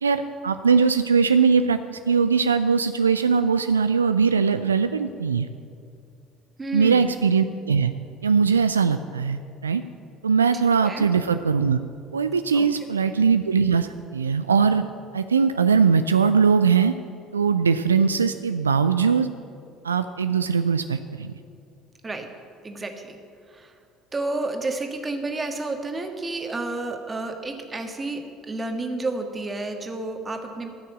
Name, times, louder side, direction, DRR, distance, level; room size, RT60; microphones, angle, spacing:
voice 1, 0.0-5.5 6.7-7.9 8.2-9.8 10.2-11.8 12.1-14.8 15.1-16.9 17.3-19.3 19.8-21.3, right 5 dB, 80° right, 10 dB, 0.3 m, -21 dB
voice 2, 6.6-7.1 10.8-11.1 12.5-12.7 13.0-13.1 22.0-22.3 22.6-23.2 23.5-23.7 24.1-30.7, right 2 dB, 25° right, 5 dB, 1.6 m, -31 dB
12.0 x 6.6 x 9.1 m, 2.4 s
figure-of-eight pair, 60°, 0 cm